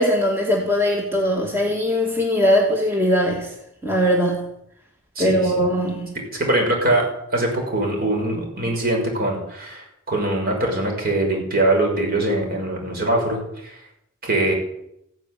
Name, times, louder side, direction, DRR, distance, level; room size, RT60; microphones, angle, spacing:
voice 1, 0.0-3.5 3.8-4.5 5.2-6.2, equal, 10° right, 0 dB, 2.1 m, -20 dB
voice 2, 5.2-5.7 6.3-7.1 7.3-13.8 14.2-14.5, right 1 dB, 45° right, 1 dB, 5.9 m, -22 dB
15.0 x 10.5 x 9.2 m, 0.78 s
head